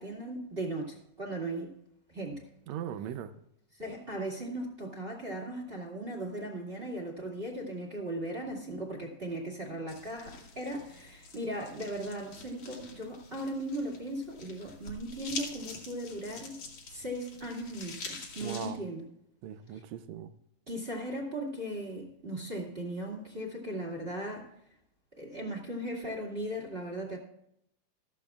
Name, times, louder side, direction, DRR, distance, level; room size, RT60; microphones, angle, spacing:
voice 1, 0.0-1.7 2.1-2.5 3.8-16.6 16.9-19.1 19.7-19.8 20.7-24.5 25.1-27.2, right 1 dB, 20° right, 1.9 m, -37 dB
voice 2, 2.7-3.3 18.4-18.8 19.4-20.3, right 10 dB, 80° right, 1.6 m, -39 dB
sound 1, 9.9-18.7, left 4 dB, 60° left, 3.6 m, -46 dB
14.0 x 14.0 x 2.4 m
omnidirectional pair, 3.8 m